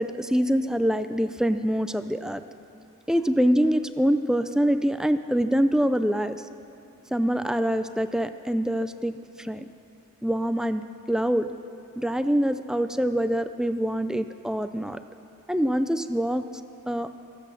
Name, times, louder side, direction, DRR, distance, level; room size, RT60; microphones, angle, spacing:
voice 1, 0.0-2.4 3.1-6.4 7.1-9.1 9.4-9.6 10.2-11.5 12.0-15.0 15.5-16.4 16.9-17.1, equal, 5° right, 10 dB, 0.3 m, -25 dB
24.0 x 8.3 x 6.9 m, 2.7 s
head